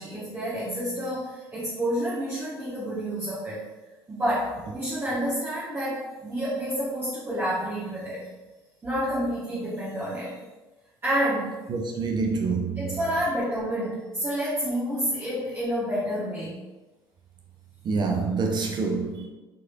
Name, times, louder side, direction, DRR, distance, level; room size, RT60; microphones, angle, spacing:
voice 1, 0.0-3.6 4.1-8.3 8.8-10.3 11.0-11.6 12.8-16.5, equal, 20° right, 1.1 m, -29 dB
voice 2, 11.7-13.0 17.8-19.3, right 4 dB, 35° right, 0.5 m, -27 dB
4.6 x 2.9 x 2.4 m
figure-of-eight pair, 60°, 13 cm